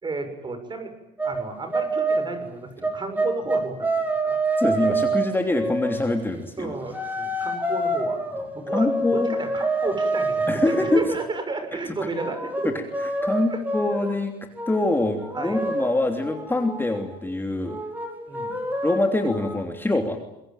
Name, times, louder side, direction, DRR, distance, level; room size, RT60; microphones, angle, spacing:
voice 1, 0.0-0.9 1.2-3.9 4.2-5.0 6.6-12.7 13.5-13.6 15.3-15.6 18.3-18.6, right 3 dB, 25° right, 8 dB, 6.8 m, -32 dB
sound 1, 1.2-1.4 1.7-2.3 2.8-6.2 6.9-11.1 12.1-14.2 14.5-14.8 15.2-17.2 17.6-19.6, right 2 dB, 10° right, 6.3 m, -27 dB
voice 2, 4.6-6.7 8.7-9.3 10.5-11.0 12.0-12.1 12.6-12.8 13.2-14.3 14.7-17.8 18.8-20.2, left 2 dB, 10° left, 4 dB, 3.1 m, -24 dB
26.0 x 22.5 x 9.2 m, 0.85 s
cardioid pair, 110°, 17 cm